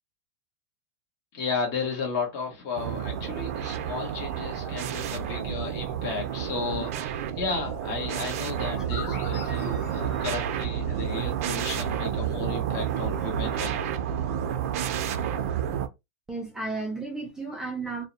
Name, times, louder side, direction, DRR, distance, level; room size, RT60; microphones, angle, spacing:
voice 1, 1.3-13.9, left 4 dB, 40° left, 1.2 m, -34 dB
sound 1, 2.8-15.9, right 9 dB, 65° right, 0.4 m, -30 dB
sound 2, 8.6-12.3, left 5 dB, 70° left, 1.1 m, -43 dB
voice 2, 16.3-18.0, right 3 dB, 5° right, 0.5 m, -33 dB
2.7 x 2.0 x 2.5 m
supercardioid pair, 140°, 9 cm